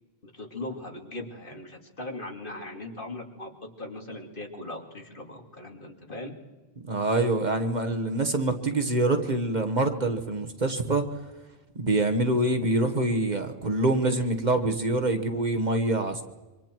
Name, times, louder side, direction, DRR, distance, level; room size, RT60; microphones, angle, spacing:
voice 1, 0.2-6.4, left 2 dB, 55° left, 2 dB, 2.8 m, -39 dB
voice 2, 6.8-11.0 11.7-16.2, right 2 dB, 45° right, 7 dB, 1.4 m, -25 dB
27.0 x 24.5 x 4.6 m, 1.2 s
omnidirectional pair, 1.1 m